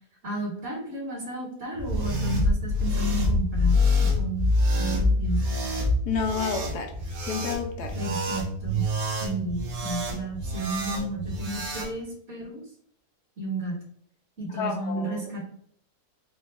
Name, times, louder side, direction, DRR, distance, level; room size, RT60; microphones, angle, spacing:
voice 1, 0.2-4.5 4.7-5.4 8.0-8.8 9.2-12.6 13.4-13.8 14.4-15.5, right 1 dB, 45° right, -7 dB, 2.0 m, -33 dB
sound 1, 1.7-11.9, left 1 dB, 70° right, 1.4 m, -26 dB
voice 2, 6.1-6.9 7.2-7.9 14.6-15.2, left 6 dB, 85° left, 4 dB, 1.3 m, -30 dB
4.9 x 2.6 x 3.3 m, 0.64 s
omnidirectional pair, 1.7 m